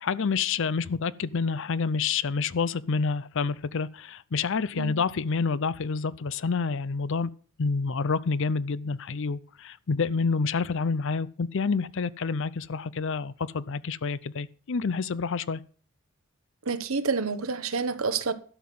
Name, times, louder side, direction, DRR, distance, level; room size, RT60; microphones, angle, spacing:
voice 1, 0.0-7.3 7.6-15.6, left 5 dB, 65° left, 0.6 m, -28 dB
voice 2, 16.7-18.3, right 4 dB, 85° right, 1.0 m, -28 dB
12.5 x 5.9 x 7.6 m
head